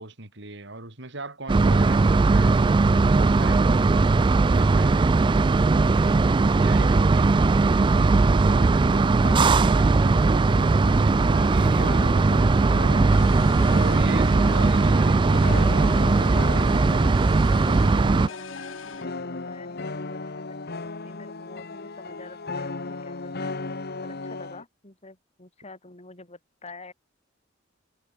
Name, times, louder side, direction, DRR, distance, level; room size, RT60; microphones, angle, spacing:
voice 1, 0.0-6.2 6.6-12.9 13.7-15.9, right 2 dB, 65° right, 4.5 m, -39 dB
sound 1, 1.5-18.3, right 3 dB, 25° right, 0.3 m, -19 dB
sound 2, 9.2-24.6, left 3 dB, 55° left, 1.4 m, -36 dB
sound 3, 13.1-19.1, left 5 dB, 80° left, 2.1 m, -42 dB
voice 2, 17.7-23.5 24.0-26.9, left 3 dB, 35° left, 5.9 m, -47 dB
head